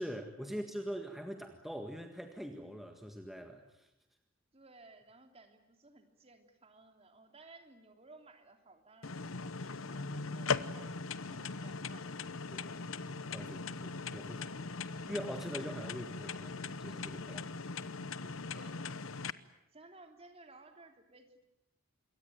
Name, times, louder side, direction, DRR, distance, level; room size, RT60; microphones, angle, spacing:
voice 1, 0.0-3.9 12.5-14.7 15.1-17.5 18.2-18.4, equal, ahead, 4 dB, 1.7 m, -43 dB
voice 2, 4.5-12.1 13.4-13.7 18.5-18.8 19.7-21.4, right 3 dB, 30° right, 5 dB, 3.1 m, -58 dB
sound 1, 9.0-19.3, left 4 dB, 75° left, 1.0 m, -40 dB
27.5 x 22.5 x 9.2 m, 0.85 s
head